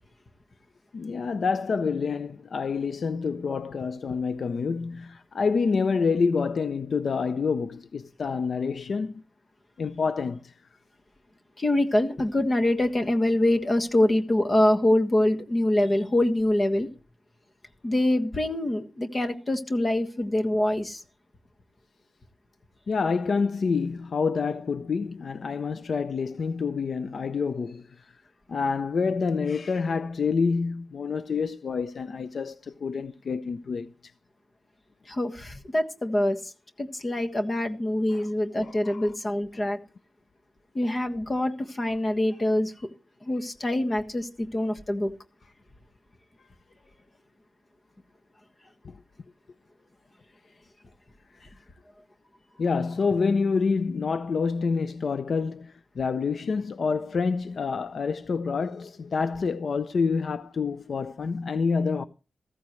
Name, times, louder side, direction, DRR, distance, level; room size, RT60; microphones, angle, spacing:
voice 1, 0.9-9.2 9.8-10.5 22.9-28.0 28.5-34.1 38.1-38.2 38.6-39.1 48.8-48.9 52.6-62.0, left 5 dB, 70° left, 0.5 m, -27 dB
voice 2, 11.6-16.9 17.8-21.0 35.1-36.5 36.8-39.8 40.7-42.9 43.2-45.1, left 1 dB, 35° left, 1.5 m, -25 dB
14.5 x 14.5 x 3.1 m
wide cardioid pair, 105°, 0 cm